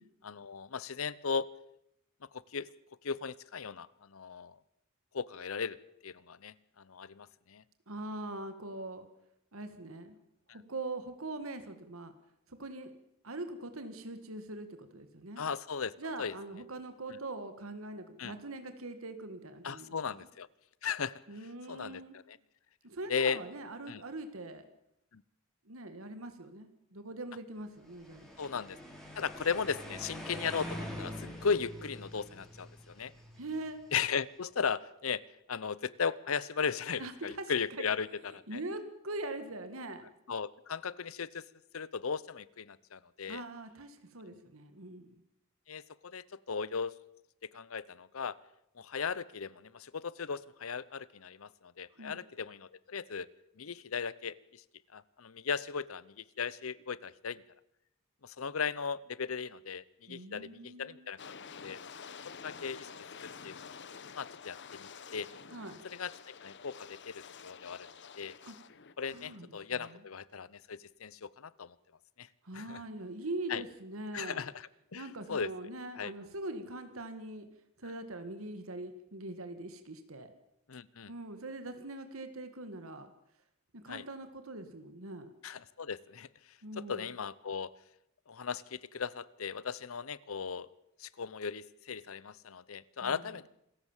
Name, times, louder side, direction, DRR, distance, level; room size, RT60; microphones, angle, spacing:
voice 1, 0.2-1.5 2.3-2.7 3.0-4.6 5.1-5.8 6.0-7.6 15.4-16.3 17.1-17.2 18.2-18.3 19.6-20.5 20.8-22.4 23.1-23.4 23.9-24.0 25.1-25.2 28.4-28.8 29.2-33.1 33.9-35.2 35.5-38.6 40.3-41.4 41.7-43.4 44.2-44.4 45.7-46.9 47.5-48.4 48.8-53.3 53.6-54.6 54.9-57.4 58.2-61.4 61.6-61.8 62.4-62.9 63.4-63.7 64.1-65.3 65.9-67.9 68.2-68.3 69.0-71.7 72.2-72.3 72.5-72.8 73.5-73.6 74.1-75.5 76.0-76.1 80.7-81.1 83.9-84.0 85.4-86.3 86.8-87.7 88.3-90.7 91.0-93.5, left 6 dB, 80° left, 20 dB, 0.8 m, -37 dB
voice 2, 7.9-9.1 9.5-10.2 10.5-12.1 12.5-12.9 13.2-15.4 16.0-20.3 21.3-22.2 22.8-24.7 25.7-28.3 33.4-33.8 37.0-37.9 38.3-40.0 43.3-45.2 52.0-52.2 60.1-61.1 65.5-65.8 68.4-68.6 69.1-70.0 72.4-74.4 74.9-77.5 77.8-80.3 81.1-83.1 83.7-85.3 86.6-87.1 93.0-93.2, right 2 dB, 85° right, 8 dB, 1.9 m, -42 dB
sound 1, 27.9-34.0, equal, ahead, 4.9 m, -45 dB
sound 2, 61.2-69.4 69.8-69.9, left 6 dB, 60° left, 1.0 m, -49 dB
27.0 x 14.5 x 7.3 m, 0.80 s
head